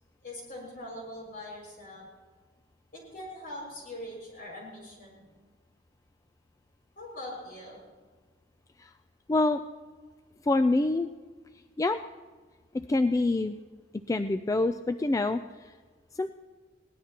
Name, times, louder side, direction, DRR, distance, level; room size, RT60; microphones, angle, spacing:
voice 1, 0.2-2.0 2.9-5.3 7.0-7.8, left 1 dB, 55° left, -2 dB, 5.8 m, -42 dB
voice 2, 9.3-9.6 10.4-11.1 11.8-12.0 12.7-13.6 14.1-15.4 16.2-16.3, left 2 dB, 20° left, 9 dB, 0.3 m, -25 dB
21.5 x 18.0 x 2.9 m, 1.4 s
head